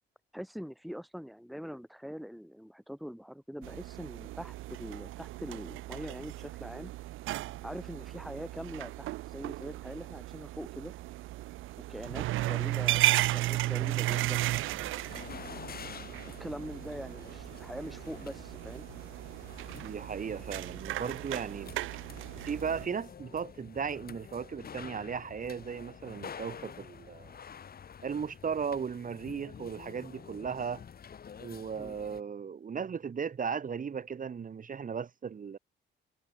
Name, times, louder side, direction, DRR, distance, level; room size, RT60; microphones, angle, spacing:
voice 1, 0.3-6.9 7.6-10.9 11.9-14.5 16.4-18.9 31.8-32.0, equal, ahead, 2.5 m, -43 dB
sound 1, 3.6-22.9, right 17 dB, 90° right, 1.0 m, -35 dB
sound 2, 14.3-32.2, left 7 dB, 50° left, 5.3 m, -49 dB
voice 2, 19.8-21.7 22.5-27.3 28.0-30.8 31.4-35.6, right 6 dB, 45° right, 2.4 m, -36 dB
cardioid pair, 90°, 20 cm